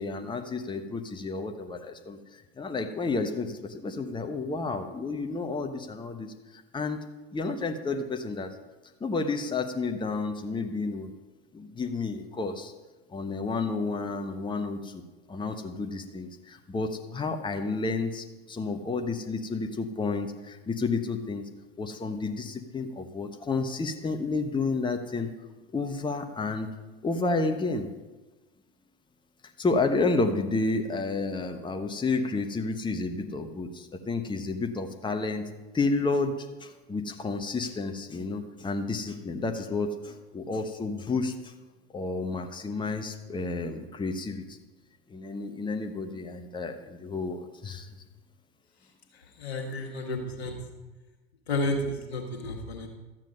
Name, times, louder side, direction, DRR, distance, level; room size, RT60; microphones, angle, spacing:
voice 1, 0.0-7.0 7.3-8.5 9.0-11.1 11.5-12.7 13.1-15.0 15.3-21.5 21.8-25.3 25.7-26.7 27.0-27.9 29.6-35.5 35.7-41.5 41.9-44.6 45.1-47.9, left 3 dB, 15° left, 5 dB, 1.0 m, -31 dB
voice 2, 49.4-50.6 51.5-52.9, left 2 dB, 85° left, 2 dB, 1.7 m, -31 dB
12.5 x 7.6 x 5.4 m, 1.2 s
hypercardioid pair, 75°, 31 cm